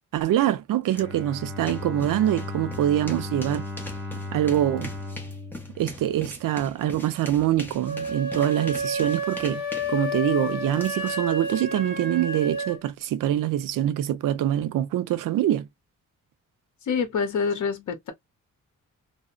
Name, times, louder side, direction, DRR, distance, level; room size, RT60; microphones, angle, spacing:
voice 1, 0.1-3.7 4.3-4.9 5.8-9.6 9.9-15.7, right 12 dB, 90° right, 0.5 m, -24 dB
sound 1, 0.9-1.0 1.3-11.5, left 1 dB, 5° left, 0.7 m, -42 dB
Bowed string instrument, 0.9-6.8, left 2 dB, 40° right, 0.9 m, -36 dB
sound 2, 7.8-12.8, equal, 40° left, 1.7 m, -30 dB
voice 2, 16.9-18.1, left 5 dB, 65° left, 0.8 m, -26 dB
2.7 x 2.1 x 2.4 m
wide cardioid pair, 140°, 32 cm